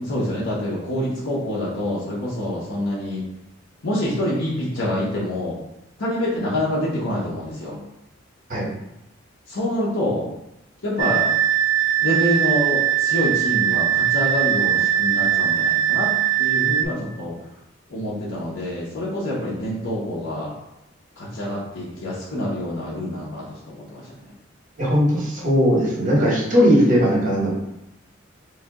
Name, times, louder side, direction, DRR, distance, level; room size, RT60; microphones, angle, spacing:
voice 1, 0.0-3.2 3.8-5.6 6.0-7.8 9.5-10.2 10.8-11.3 12.0-16.1 16.4-17.3 17.9-20.5 21.2-24.0, left 1 dB, 80° left, -6 dB, 0.8 m, -26 dB
sound 1, 11.0-16.9, right 10 dB, 75° right, 0.3 m, -20 dB
voice 2, 24.8-27.5, equal, 40° right, -5 dB, 1.3 m, -18 dB
3.3 x 2.6 x 3.6 m, 0.88 s
head